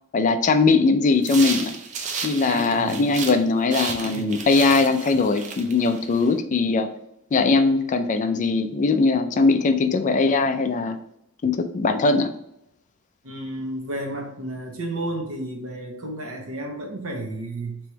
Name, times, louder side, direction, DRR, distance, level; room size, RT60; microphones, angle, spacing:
voice 1, 0.1-1.7 2.2-6.9 7.3-11.0 11.4-12.3, left 3 dB, 35° left, 9 dB, 0.3 m, -20 dB
sound 1, 1.2-3.4 3.7-6.3, right 5 dB, 35° right, 0.5 m, -33 dB
voice 2, 2.5-3.1 4.0-4.4 13.2-17.8, right 1 dB, 65° right, 2 dB, 1.0 m, -32 dB
3.3 x 3.0 x 4.4 m, 0.80 s
head